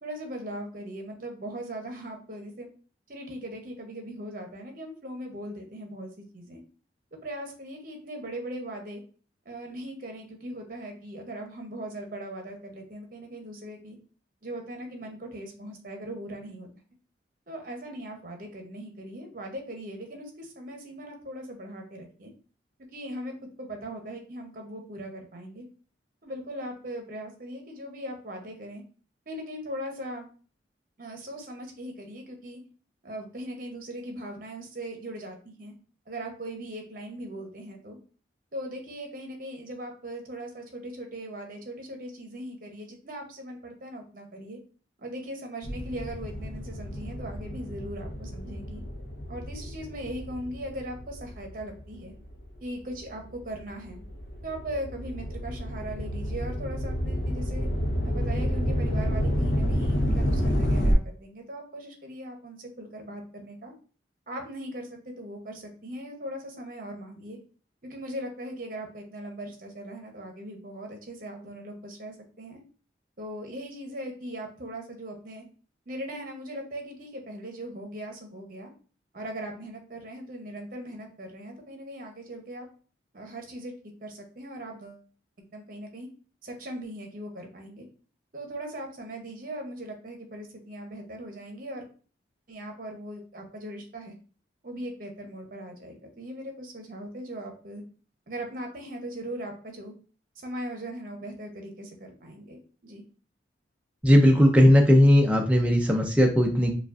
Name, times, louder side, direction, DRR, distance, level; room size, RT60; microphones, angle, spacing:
voice 1, 0.0-2.7 3.1-6.6 7.1-9.0 9.4-14.0 14.4-16.7 17.5-22.3 22.9-25.7 26.2-28.8 29.3-30.3 31.0-32.6 33.0-35.7 36.1-38.0 38.5-44.6 45.0-48.8 49.3-52.1 52.6-54.0 54.4-57.7 58.0-63.7 64.3-67.4 67.8-72.6 73.2-75.4 75.9-78.7 79.1-82.7 83.1-83.7 84.0-85.0 85.4-86.1 86.4-87.9 88.3-91.8 92.5-94.1 94.6-97.8 98.3-99.9 100.4-103.0, right 1 dB, 45° right, 3 dB, 0.8 m, -39 dB
sound 1, 45.6-52.4 53.0-60.9, equal, 75° left, 0.7 m, -29 dB
voice 2, 104.0-106.7, equal, 5° right, 0 dB, 0.4 m, -18 dB
4.9 x 2.3 x 2.4 m, 0.39 s
head